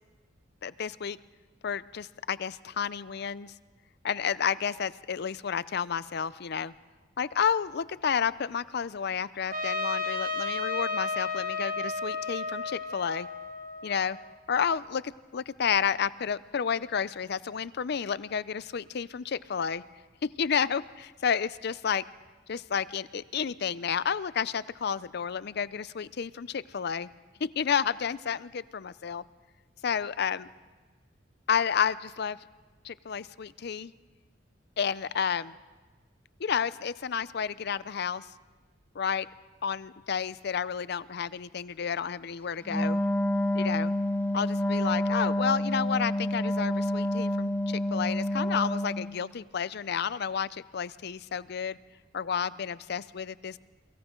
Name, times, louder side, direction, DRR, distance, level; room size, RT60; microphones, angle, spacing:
voice 1, 0.6-1.2 1.6-3.5 4.0-6.7 7.2-13.3 13.8-14.2 14.5-15.0 15.3-19.8 20.4-22.0 22.5-27.1 27.6-29.2 29.8-30.5 31.5-32.4 32.8-33.9 34.8-35.6 36.4-38.3 38.9-39.3 39.6-43.0 43.5-43.9 44.3-51.8 52.1-53.6, left 7 dB, 60° left, 17 dB, 0.5 m, -31 dB
Trumpet, 9.5-14.3, left 3 dB, 45° right, 1.4 m, -33 dB
Wind instrument woodwind instrument, 42.7-49.2, left 1 dB, 10° left, 1.2 m, -28 dB
29.0 x 23.5 x 3.8 m, 1.3 s
head